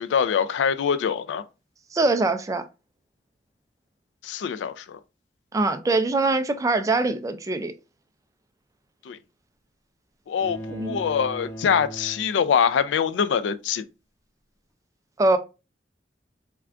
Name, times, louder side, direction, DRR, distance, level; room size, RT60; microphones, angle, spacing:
voice 1, 0.0-1.4 4.2-5.0 9.1-9.2 10.3-10.6 10.8-13.8, left 7 dB, 85° left, 0.3 m, -24 dB
voice 2, 1.9-2.6 5.5-7.7 10.7-11.0 15.2-15.4, right 2 dB, 20° right, 0.3 m, -23 dB
sound 1, 10.4-13.0, right 1 dB, 15° left, 0.8 m, -38 dB
3.6 x 2.3 x 3.3 m
head